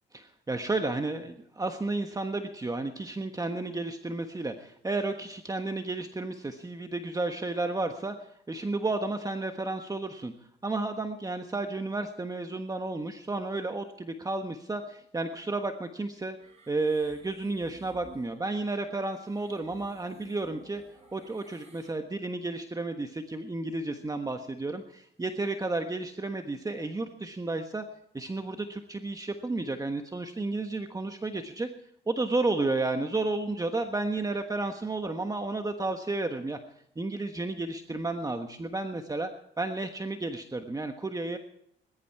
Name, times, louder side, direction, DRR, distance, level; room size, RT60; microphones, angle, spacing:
voice 1, 0.1-10.3 10.6-16.4 16.7-20.8 21.1-27.8 28.1-31.7 32.1-36.6 37.0-39.3 39.6-41.4, right 2 dB, 15° right, 6 dB, 1.3 m, -32 dB
sound 1, 16.4-21.9, right 3 dB, 35° right, 7.0 m, -55 dB
21.0 x 12.0 x 4.8 m, 0.73 s
cardioid pair, 90°, 20 cm